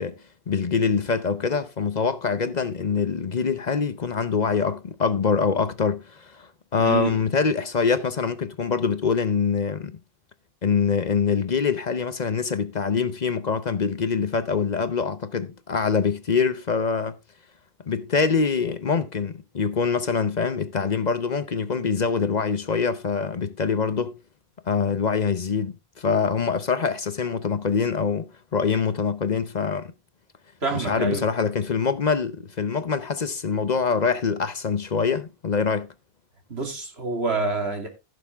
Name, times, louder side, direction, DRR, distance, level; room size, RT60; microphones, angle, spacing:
voice 1, 0.0-10.0 10.6-17.2 17.9-24.2 24.7-29.9 30.7-35.9, left 5 dB, 45° left, 0.8 m, -24 dB
voice 2, 6.8-7.1 30.6-31.2 36.5-37.9, right 4 dB, 85° right, 2.9 m, -27 dB
15.5 x 6.8 x 3.5 m
omnidirectional pair, 1.0 m